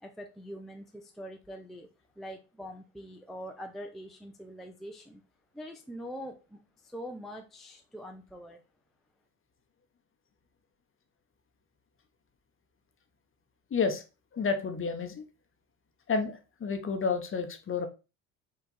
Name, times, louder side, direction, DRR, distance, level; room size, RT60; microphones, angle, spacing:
voice 1, 0.0-1.9 2.2-5.2 5.5-8.6, equal, ahead, 2 dB, 0.5 m, -44 dB
voice 2, 13.7-14.0 14.3-15.2 16.1-17.9, left 5 dB, 30° left, 6 dB, 0.9 m, -30 dB
4.7 x 2.4 x 4.1 m, 0.30 s
supercardioid pair, 80°, 43 cm